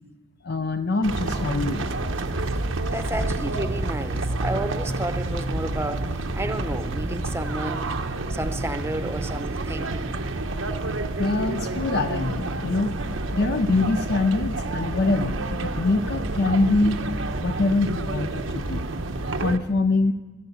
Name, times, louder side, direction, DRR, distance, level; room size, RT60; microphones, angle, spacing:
voice 1, 0.4-1.9 11.2-12.9 13.3-17.0 17.4-18.9 19.4-20.1, left 3 dB, 55° left, 8 dB, 0.5 m, -24 dB
sound 1, 1.0-19.6, right 2 dB, 90° right, 1.0 m, -29 dB
voice 2, 2.9-8.0 8.3-10.1, right 1 dB, 15° right, 8 dB, 0.7 m, -32 dB
15.5 x 11.0 x 8.4 m, 1.3 s
head